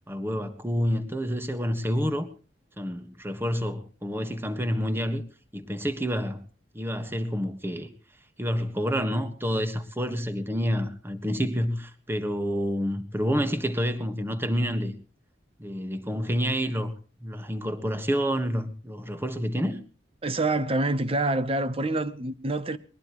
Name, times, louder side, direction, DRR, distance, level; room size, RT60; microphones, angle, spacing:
voice 1, 0.1-2.3 2.8-5.2 5.5-6.4 6.7-7.9 8.4-14.9 15.6-16.9 17.2-19.8, equal, 10° right, 1.5 m, -28 dB
voice 2, 20.2-22.8, right 2 dB, 30° right, 0.9 m, -26 dB
21.0 x 20.5 x 3.1 m
head